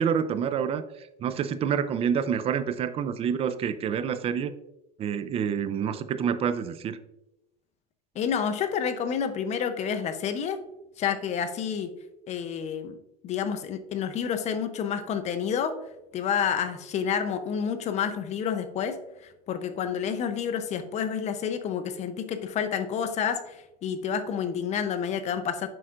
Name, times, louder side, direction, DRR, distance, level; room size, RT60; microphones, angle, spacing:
voice 1, 0.0-4.5 5.0-7.0, right 7 dB, 30° right, 12 dB, 0.5 m, -28 dB
voice 2, 8.1-10.6 11.0-11.9 12.3-13.0 13.2-15.7 16.1-19.0 19.2-25.7, left 7 dB, 35° left, 9 dB, 0.7 m, -29 dB
7.7 x 5.7 x 2.5 m, 0.90 s
supercardioid pair, 120°, 20 cm